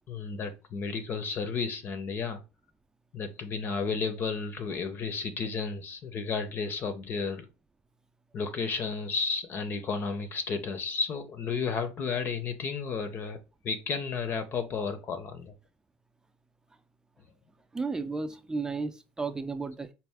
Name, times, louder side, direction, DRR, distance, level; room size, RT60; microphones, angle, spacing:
voice 1, 0.1-2.4 3.1-7.5 8.3-13.4 13.6-15.5, left 5 dB, 45° left, 0.7 m, -32 dB
voice 2, 17.7-19.9, right 4 dB, 15° right, 0.5 m, -33 dB
4.3 x 2.2 x 3.5 m
supercardioid pair, 95°, 5 cm